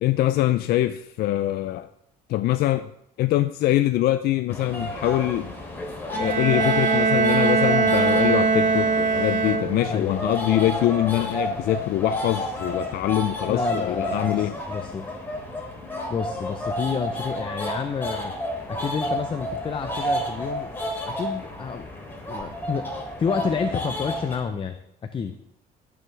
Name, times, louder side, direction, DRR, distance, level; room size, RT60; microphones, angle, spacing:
voice 1, 0.0-1.9 2.3-2.9 3.2-5.5 6.2-14.5, left 14 dB, 65° left, 0.4 m, -23 dB
sound 1, 4.5-24.4, equal, 10° left, 3.1 m, -31 dB
Bowed string instrument, 6.1-10.1, right 4 dB, 50° right, 0.8 m, -21 dB
voice 2, 9.9-10.2 13.5-15.1 16.1-18.4 18.7-20.7 21.0-21.9 22.3-22.9 23.2-24.8 25.0-25.3, left 6 dB, 30° left, 0.6 m, -29 dB
17.0 x 7.0 x 3.3 m
cardioid pair, 110°, 17 cm